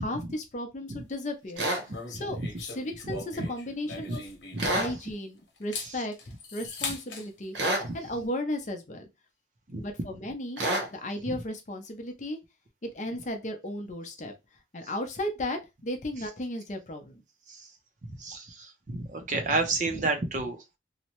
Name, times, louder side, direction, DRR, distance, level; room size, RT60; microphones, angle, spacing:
voice 1, 0.0-1.7 2.1-4.2 4.6-6.1 6.5-7.6 7.9-9.1 9.8-10.6 10.9-12.4 12.8-14.3 14.7-17.2, left 1 dB, 40° left, 0.6 m, -35 dB
sound 1, 1.6-1.8 4.6-4.9 7.5-7.9 10.6-10.9, right 1 dB, 80° right, 0.9 m, -27 dB
sound 2, 1.9-5.1 5.6-7.3, left 4 dB, 90° left, 0.9 m, -40 dB
voice 2, 1.9-2.5 3.0-3.2 4.0-4.2 4.5-4.8 5.8-6.0 7.8-7.9 9.7-9.8 11.3-11.4 16.2-16.3 17.5-17.7 18.0-20.8, right 3 dB, 40° right, 0.5 m, -32 dB
2.8 x 2.1 x 2.9 m
head